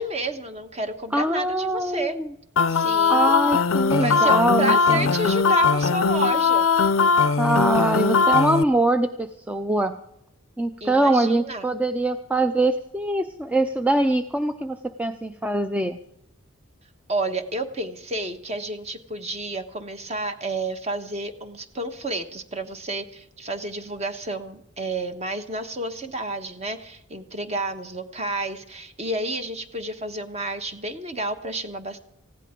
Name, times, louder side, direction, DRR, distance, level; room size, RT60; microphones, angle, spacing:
voice 1, 0.0-2.2 2.7-3.3 4.0-6.7 10.8-11.6 17.1-32.0, right 2 dB, 30° right, 7 dB, 1.2 m, -30 dB
voice 2, 1.1-2.3 3.1-5.1 7.4-9.9 10.6-16.0, right 1 dB, 5° right, 8 dB, 0.5 m, -23 dB
sound 1, 2.6-8.6, left 5 dB, 75° left, 0.5 m, -20 dB
19.5 x 16.0 x 3.8 m, 0.80 s
head